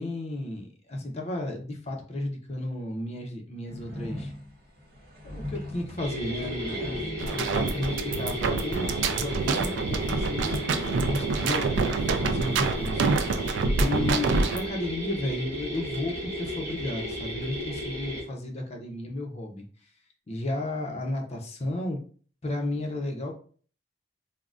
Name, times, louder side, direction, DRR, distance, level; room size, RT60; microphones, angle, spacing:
voice 1, 0.0-4.3 5.2-7.0 7.3-11.8 12.2-19.6 20.3-22.0 22.4-23.3, left 1 dB, 35° left, 2 dB, 0.6 m, -33 dB
sound 1, 3.7-9.1 12.4-13.2, left 1 dB, 55° right, 0.8 m, -41 dB
sound 2, 6.0-18.2, equal, 20° right, 1.1 m, -34 dB
sound 3, 7.2-14.7, right 4 dB, 80° right, 0.3 m, -27 dB
3.6 x 2.1 x 2.4 m, 0.43 s
head